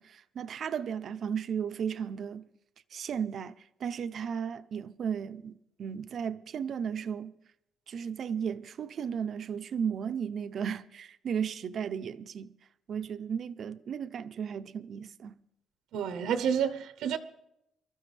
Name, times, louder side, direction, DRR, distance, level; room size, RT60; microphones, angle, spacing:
voice 1, 0.0-2.4 2.9-7.3 7.9-12.5 12.9-15.4, right 7 dB, 50° right, 0.6 m, -35 dB
voice 2, 15.9-17.2, right 8 dB, 80° right, 0.8 m, -29 dB
23.5 x 13.5 x 3.3 m
cardioid pair, 155°, 0 cm